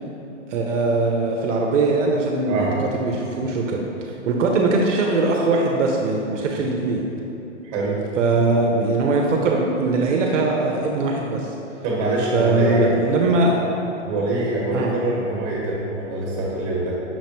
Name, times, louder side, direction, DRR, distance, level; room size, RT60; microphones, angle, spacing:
voice 1, 0.5-7.0 8.2-11.5 12.3-13.6 14.7-15.0, right 3 dB, 75° right, 0 dB, 0.5 m, -21 dB
voice 2, 7.6-8.0 11.8-13.0 14.0-16.9, right 1 dB, 25° right, -4 dB, 1.0 m, -24 dB
5.7 x 2.1 x 2.9 m, 2.9 s
hypercardioid pair, 145°, 37 cm